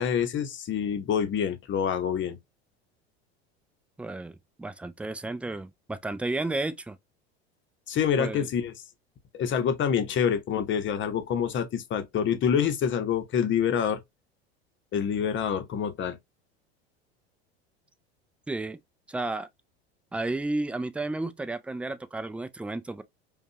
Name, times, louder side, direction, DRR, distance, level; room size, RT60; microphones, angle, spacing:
voice 1, 0.0-2.4 7.9-8.7 9.3-14.0 14.9-16.2, left 8 dB, 35° left, 0.9 m, -26 dB
voice 2, 4.0-7.0 8.2-8.5 18.5-18.8 19.1-19.5 20.1-23.0, right 2 dB, 5° right, 0.3 m, -32 dB
5.2 x 2.4 x 2.7 m
hypercardioid pair, 85°, 32 cm